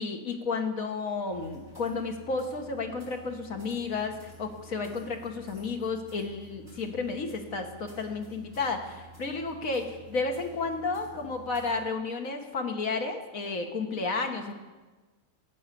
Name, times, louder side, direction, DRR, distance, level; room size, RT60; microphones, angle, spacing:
voice 1, 0.0-14.5, left 4 dB, 65° left, 3 dB, 1.8 m, -32 dB
sound 1, 1.3-11.9, right 2 dB, 40° right, 5.3 m, -51 dB
15.0 x 9.0 x 6.8 m, 1.2 s
omnidirectional pair, 1.6 m